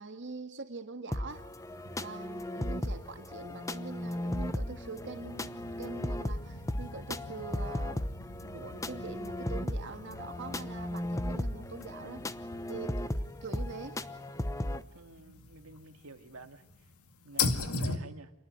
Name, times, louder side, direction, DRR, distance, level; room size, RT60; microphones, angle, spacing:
voice 1, 0.0-1.5 2.0-8.0 8.4-12.2 12.7-13.0 13.4-14.0, right 4 dB, 55° right, 8 dB, 1.6 m, -44 dB
sound 1, 1.1-14.8, left 1 dB, 15° left, 0.9 m, -36 dB
sound 2, 1.3-18.0, left 4 dB, 80° left, 2.2 m, -41 dB
voice 2, 14.9-16.9 17.2-18.3, right 3 dB, 70° right, 8 dB, 2.1 m, -50 dB
28.0 x 19.5 x 9.2 m, 0.92 s
head